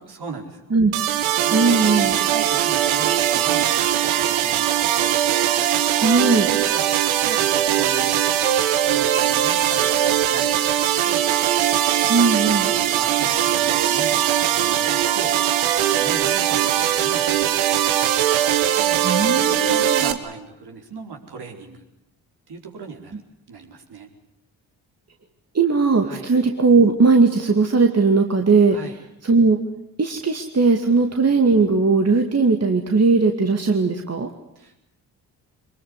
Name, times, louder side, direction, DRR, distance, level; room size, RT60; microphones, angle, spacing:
voice 1, 0.1-0.6 1.4-5.2 6.7-6.9 7.2-8.2 8.8-11.2 12.7-15.5 15.8-18.3 18.7-19.0 19.4-21.8 22.5-23.2 23.5-24.1 26.0-26.3 28.7-28.9 31.0-31.1 34.5-34.9, right 4 dB, 55° right, 3 dB, 4.7 m, -37 dB
sound 1, 0.9-20.1, right 11 dB, 75° right, 1.5 m, -20 dB
voice 2, 1.5-2.1 6.0-6.5 12.1-12.7 19.0-20.1 25.5-28.8 29.2-29.6 30.0-34.3, right 4 dB, 30° right, 4 dB, 2.3 m, -18 dB
23.5 x 21.0 x 9.7 m, 0.78 s
hypercardioid pair, 45°, 47 cm